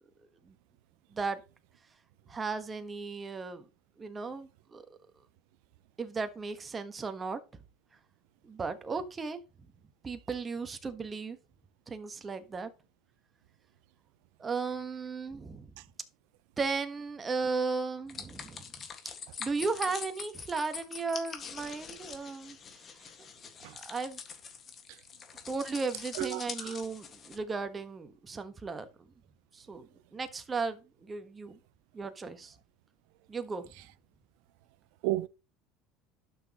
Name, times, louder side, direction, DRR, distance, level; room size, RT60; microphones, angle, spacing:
voice 1, 2.3-3.7 4.0-4.8 6.0-7.4 8.4-9.4 10.0-11.4 11.9-12.7 14.4-15.7 16.6-18.7 19.4-22.8 23.7-24.2 25.5-28.9 29.5-29.9 30.1-31.6 31.9-32.5 33.3-33.7, right 4 dB, 25° right, 1.4 m, -35 dB
sound 1, 18.1-27.4, left 6 dB, 35° left, 1.8 m, -44 dB
voice 2, 26.2-26.8 35.0-35.3, right 17 dB, 75° right, 0.5 m, -33 dB
11.5 x 6.2 x 3.0 m
supercardioid pair, 105°, 0 cm